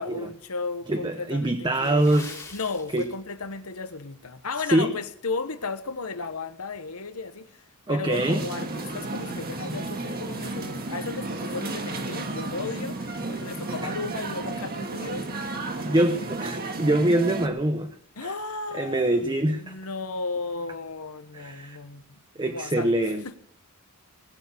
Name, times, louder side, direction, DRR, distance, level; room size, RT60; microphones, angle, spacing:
voice 1, 0.0-15.9 18.2-19.3 19.6-23.0 23.2-23.4, left 4 dB, 75° left, 1.2 m, -35 dB
voice 2, 0.9-2.3 2.9-3.0 4.7-4.9 7.9-8.5 13.8-13.9 15.8-17.9 18.2-18.3 18.8-19.7 21.3-21.8 22.4-23.4, right 1 dB, 20° right, 0.8 m, -24 dB
Water / Splash splatter, 1.7-3.6 3.9-4.1 4.7-4.9 5.4-5.5, left 3 dB, 15° left, 2.2 m, -44 dB
sound 1, 8.1-17.5, right 2 dB, 45° right, 1.7 m, -33 dB
19.5 x 6.8 x 8.6 m
head